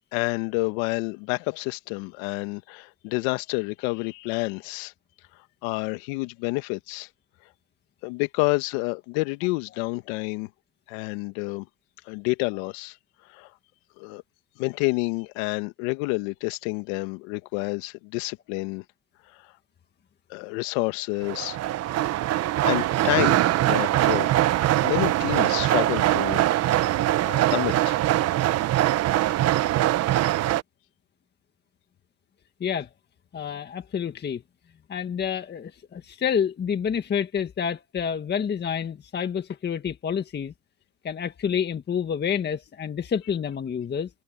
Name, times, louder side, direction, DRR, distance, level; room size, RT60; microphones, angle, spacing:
voice 1, 0.1-4.9 5.6-7.1 8.0-10.5 10.9-11.7 12.0-13.0 13.2-13.5 14.0-14.2 14.6-18.8 19.3-19.5 20.3-21.6 21.9-22.1 22.6-24.3 24.8-26.4 27.2-28.0, left 26 dB, 55° left, 1.5 m, -29 dB
sound 1, 21.2-30.6, right 14 dB, 30° right, 1.0 m, -22 dB
voice 2, 33.3-34.4 34.9-40.5 41.0-44.1, left 7 dB, 20° left, 1.8 m, -28 dB
supercardioid pair, 125°, 50 cm